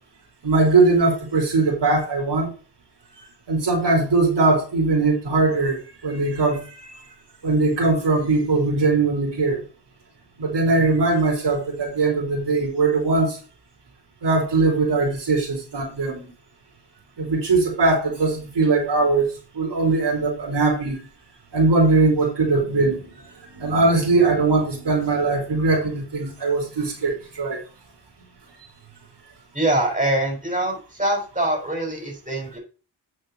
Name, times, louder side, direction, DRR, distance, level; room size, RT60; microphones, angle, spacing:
voice 1, 0.4-2.5 3.5-7.0 7.4-9.6 10.4-13.4 14.2-16.3 17.2-21.0 21.5-23.1 23.4-27.6, right 3 dB, 85° right, 0 dB, 3.5 m, -20 dB
voice 2, 29.5-32.6, right 1 dB, 20° right, 1 dB, 4.6 m, -24 dB
8.6 x 6.6 x 4.1 m, 0.34 s
wide cardioid pair, 75°, 41 cm